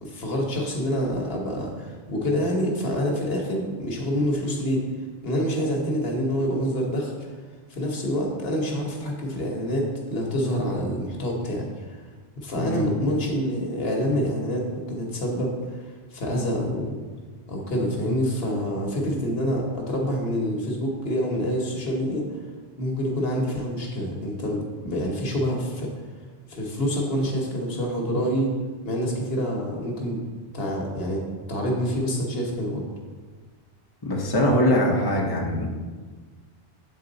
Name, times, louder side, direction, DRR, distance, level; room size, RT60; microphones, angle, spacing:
voice 1, 0.0-4.8 5.2-7.1 7.7-12.0 12.3-15.5 16.1-17.0 17.5-22.2 22.8-25.9 26.5-28.5 28.8-30.2 30.5-31.2 31.5-32.8, equal, 75° left, 0 dB, 1.3 m, -27 dB
voice 2, 34.0-35.7, left 1 dB, 25° left, -2 dB, 0.9 m, -22 dB
8.3 x 3.7 x 4.0 m, 1.4 s
omnidirectional pair, 1.0 m